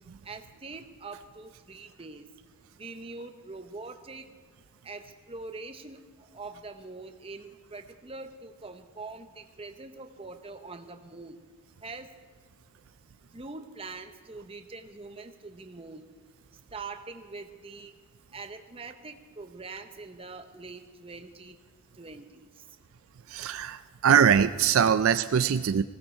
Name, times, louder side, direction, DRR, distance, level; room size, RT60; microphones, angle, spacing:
voice 1, 0.2-2.2 2.8-4.3 4.8-11.4 11.8-12.1 13.3-16.1 16.7-17.9 18.3-21.6 22.0-22.6, right 3 dB, 25° right, 7 dB, 0.8 m, -43 dB
voice 2, 23.3-25.8, right 7 dB, 70° right, 12 dB, 0.4 m, -22 dB
19.5 x 16.0 x 4.4 m, 1.5 s
head